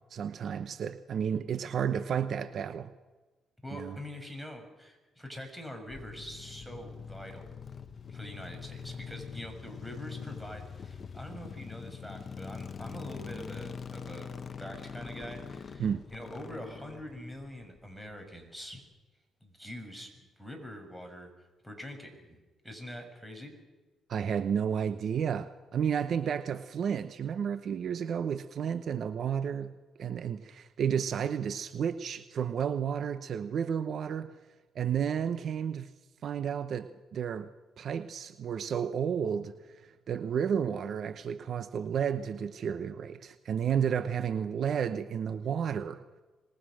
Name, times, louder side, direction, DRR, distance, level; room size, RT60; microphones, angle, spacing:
voice 1, 0.1-2.9 3.7-4.0 15.8-16.0 24.1-29.7 30.0-34.3 34.7-35.9 36.2-37.5 37.8-46.0, right 8 dB, 60° right, 11 dB, 0.9 m, -32 dB
voice 2, 3.6-7.5 8.1-18.8 19.4-21.3 21.6-23.5, equal, 5° right, 4 dB, 6.1 m, -44 dB
sound 1, 5.9-18.1, left 6 dB, 45° left, 1.3 m, -43 dB
26.0 x 20.5 x 6.4 m, 1.2 s
cardioid pair, 90°, 0 cm